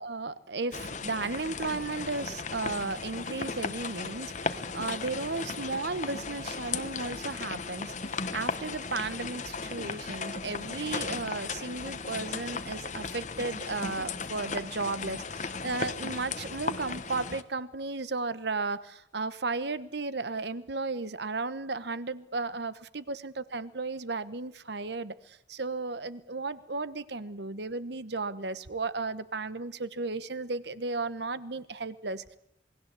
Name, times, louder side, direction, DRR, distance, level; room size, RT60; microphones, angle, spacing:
voice 1, 0.0-15.2 15.6-32.4, right 3 dB, 65° right, 15 dB, 1.2 m, -34 dB
sound 1, 0.7-17.4, left 4 dB, 40° left, 1.2 m, -36 dB
28.0 x 20.0 x 8.3 m, 0.75 s
head